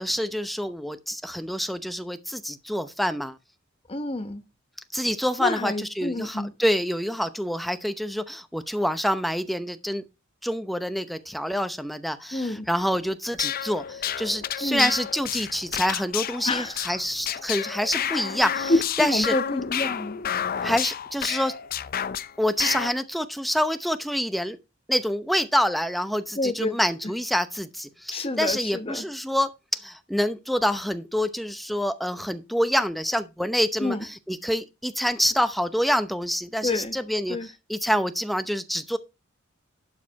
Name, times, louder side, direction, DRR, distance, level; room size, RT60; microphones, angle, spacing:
voice 1, 0.0-3.4 4.9-10.0 10.4-18.7 19.0-19.3 20.6-21.5 22.4-24.6 24.9-39.0, equal, ahead, 0.8 m, -27 dB
voice 2, 3.9-4.4 5.4-6.5 12.3-12.7 14.6-14.9 16.4-16.9 17.9-18.1 18.7-20.2 26.4-26.8 28.1-29.0 33.8-34.0 36.6-37.0 37.3-37.5, left 2 dB, 30° left, 1.0 m, -28 dB
sound 1, 13.3-22.3 22.6-22.9, left 9 dB, 45° left, 0.5 m, -30 dB
11.5 x 4.9 x 4.7 m
head